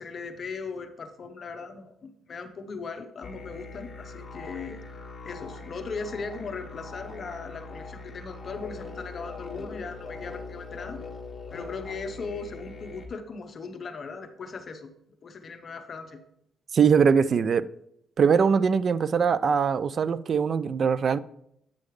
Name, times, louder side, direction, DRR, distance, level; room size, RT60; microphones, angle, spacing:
voice 1, 0.0-4.8 5.2-11.0 11.5-14.9 15.2-16.2, left 4 dB, 45° left, 8 dB, 0.8 m, -38 dB
sound 1, 3.2-13.1, left 3 dB, 30° left, 1.6 m, -41 dB
voice 2, 16.7-17.6 18.2-21.2, right 6 dB, 50° right, 17 dB, 0.3 m, -22 dB
8.4 x 6.4 x 3.2 m, 0.74 s
cardioid pair, 90°, 0 cm